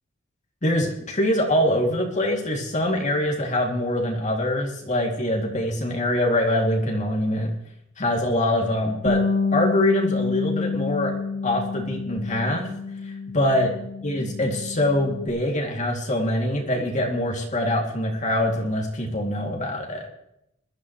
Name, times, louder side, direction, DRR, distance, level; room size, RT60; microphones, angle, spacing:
voice 1, 0.6-7.5 8.0-9.2 9.5-11.1 11.4-12.7 13.3-13.7 14.0-20.1, left 1 dB, 35° left, 0 dB, 2.5 m, -24 dB
Bass guitar, 9.1-15.3, left 4 dB, 55° left, 1.9 m, -28 dB
21.5 x 12.5 x 3.1 m, 0.79 s
head